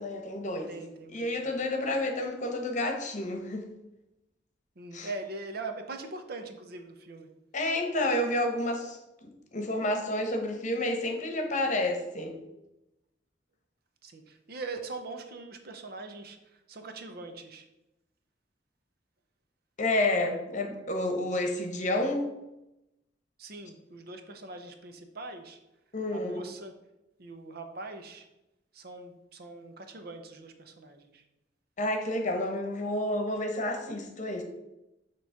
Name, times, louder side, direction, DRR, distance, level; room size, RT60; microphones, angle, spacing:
voice 1, 0.0-0.7 1.1-3.7 4.9-5.1 7.5-12.4 19.8-22.3 25.9-26.4 31.8-34.4, left 1 dB, 45° left, 4 dB, 1.0 m, -30 dB
voice 2, 0.7-1.6 4.8-7.3 14.0-17.7 23.4-25.6 26.1-26.7 27.2-28.3 28.7-31.2, right 3 dB, 60° right, 6 dB, 0.8 m, -42 dB
6.9 x 3.1 x 5.7 m, 0.92 s
head